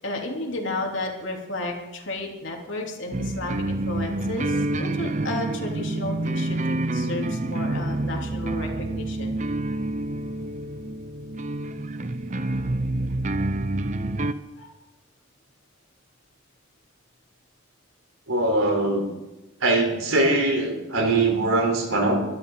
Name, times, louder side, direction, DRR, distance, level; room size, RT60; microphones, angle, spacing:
voice 1, 0.0-9.4 14.2-14.3 14.6-14.7, left 2 dB, 65° left, 0 dB, 3.2 m, -32 dB
sound 1, 3.1-14.3, right 2 dB, 35° right, 0.6 m, -28 dB
voice 2, 18.3-19.1 19.6-22.2, right 2 dB, 85° right, 3 dB, 3.9 m, -22 dB
24.0 x 12.5 x 4.0 m, 1.0 s
head